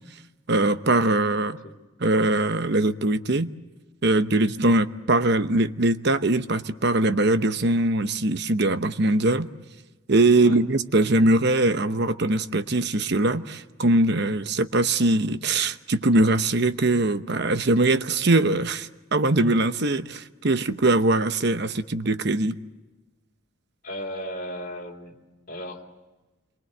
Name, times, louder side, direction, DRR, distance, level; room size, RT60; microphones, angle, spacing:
voice 1, 0.5-1.6 2.0-3.5 4.0-9.5 10.1-22.6, right 2 dB, 50° right, 11 dB, 0.9 m, -22 dB
voice 2, 1.4-1.8 10.4-10.6 23.8-25.2 25.5-25.8, equal, 40° left, 2 dB, 3.6 m, -35 dB
27.5 x 23.5 x 7.7 m, 1.1 s
head